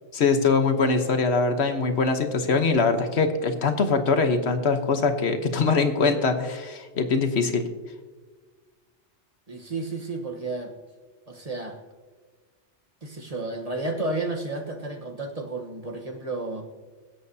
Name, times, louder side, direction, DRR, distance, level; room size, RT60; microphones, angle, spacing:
voice 1, 0.1-7.7, left 4 dB, 70° left, 7 dB, 1.3 m, -23 dB
voice 2, 9.5-10.7 11.3-11.8 13.0-16.6, right 2 dB, 35° right, 2 dB, 1.2 m, -32 dB
23.5 x 7.9 x 2.8 m, 1.4 s
omnidirectional pair, 1.2 m